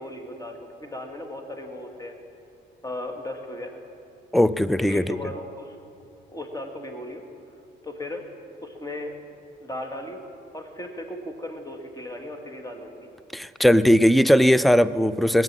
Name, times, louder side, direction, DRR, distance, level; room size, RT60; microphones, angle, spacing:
voice 1, 0.0-2.2 2.8-3.8 4.8-5.8 6.3-7.2 7.8-8.3 8.6-9.1 9.6-13.1, left 1 dB, 20° left, 3 dB, 1.8 m, -36 dB
voice 2, 4.3-5.2 13.3-15.4, equal, ahead, 16 dB, 0.4 m, -18 dB
18.5 x 9.1 x 7.4 m, 2.5 s
cardioid pair, 90°, 20 cm